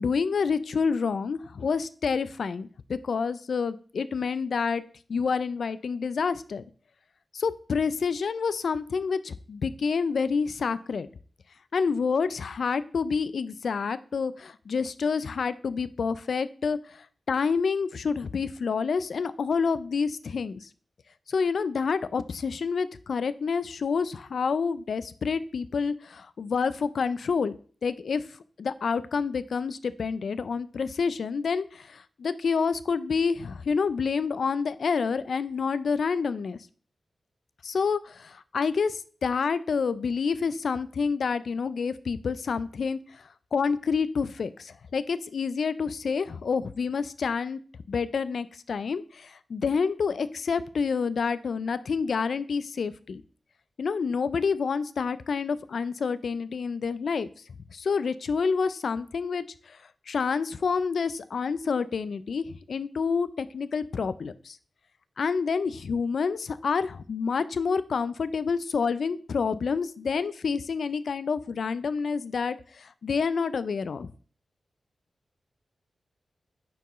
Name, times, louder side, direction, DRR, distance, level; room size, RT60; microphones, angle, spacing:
voice 1, 0.0-4.8 5.1-6.6 7.3-11.1 11.7-20.7 21.3-27.5 27.8-28.2 28.6-36.6 37.6-43.2 43.5-47.6 47.9-53.2 53.8-57.3 57.7-59.8 60.1-64.6 65.2-74.1, left 5 dB, 70° left, 15 dB, 0.4 m, -28 dB
9.2 x 4.6 x 3.1 m, 0.43 s
wide cardioid pair, 140°, 0 cm